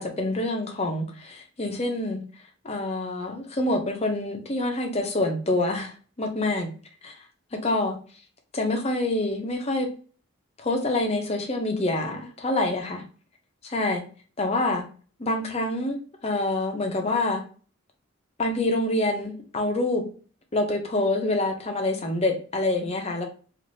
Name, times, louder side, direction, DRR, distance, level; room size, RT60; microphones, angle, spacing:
voice 1, 0.0-2.2 2.6-6.7 7.0-7.1 7.6-8.0 8.5-9.9 10.6-13.0 13.6-14.0 14.4-14.9 15.2-16.0 16.2-17.4 18.4-20.0 20.5-23.2, left 2 dB, 30° left, 3 dB, 0.6 m, -26 dB
3.1 x 2.5 x 2.7 m, 0.39 s
head